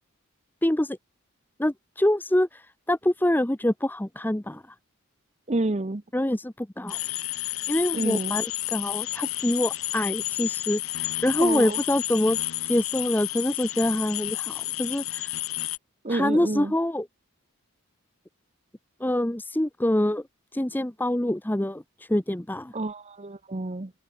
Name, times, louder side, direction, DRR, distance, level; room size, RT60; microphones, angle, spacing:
voice 1, 0.6-1.0 1.6-4.6 6.1-7.0 7.7-15.4 16.1-17.1 19.0-20.2 20.5-22.7, left 1 dB, 10° left, 0.7 m, -26 dB
voice 2, 5.5-6.0 7.9-8.4 11.4-11.8 16.0-16.7 22.7-23.9, right 2 dB, 30° right, 0.8 m, -29 dB
sound 1, 6.9-15.8, left 18 dB, 70° left, 0.5 m, -31 dB
open air
head